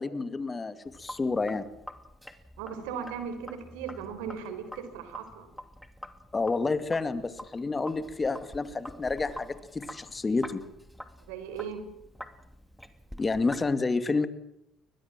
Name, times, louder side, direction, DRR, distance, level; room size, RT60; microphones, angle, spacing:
voice 1, 0.0-1.7 6.3-10.6 13.2-14.3, left 3 dB, 25° left, 11 dB, 2.3 m, -29 dB
Sink (filling or washing), 0.9-13.7, equal, 5° left, 2.6 m, -47 dB
voice 2, 2.6-5.5 11.3-11.8, right 7 dB, 90° right, 9 dB, 4.3 m, -37 dB
23.0 x 20.0 x 7.6 m, 0.80 s
supercardioid pair, 80°, 0 cm